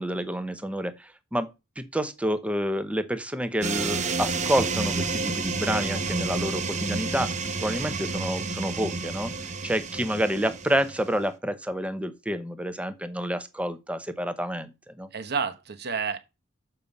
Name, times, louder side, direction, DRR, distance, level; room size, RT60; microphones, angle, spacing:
voice 1, 0.0-1.5 1.8-7.3 7.6-15.1, equal, 5° right, 0.8 m, -29 dB
sound 1, 3.6-11.2, right 3 dB, 35° right, 0.9 m, -30 dB
voice 2, 5.1-5.5 15.1-16.2, right 5 dB, 50° right, 1.1 m, -31 dB
6.8 x 5.3 x 7.0 m
head